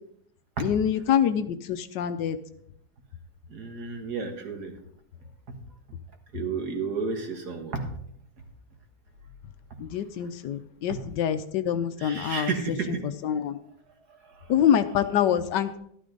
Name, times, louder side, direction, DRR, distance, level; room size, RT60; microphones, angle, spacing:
voice 1, 0.6-2.4 9.8-12.5 13.2-13.6 14.5-15.8, left 9 dB, 75° left, 11 dB, 1.2 m, -25 dB
voice 2, 3.5-4.7 6.3-7.9 10.9-11.1 12.0-13.1 14.2-14.6 15.1-15.4, right 5 dB, 60° right, 4 dB, 2.0 m, -32 dB
12.0 x 12.0 x 3.9 m, 0.70 s
omnidirectional pair, 2.0 m